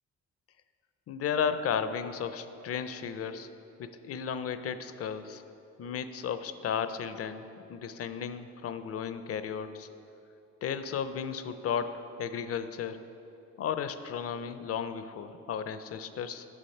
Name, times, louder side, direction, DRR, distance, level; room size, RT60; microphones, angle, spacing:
voice 1, 1.1-3.5 3.8-5.4 5.8-7.4 7.7-9.9 10.6-13.0 13.6-16.5, left 7 dB, 50° left, 11 dB, 0.5 m, -34 dB
9.8 x 6.0 x 4.2 m, 2.9 s
cardioid pair, 90°, 30 cm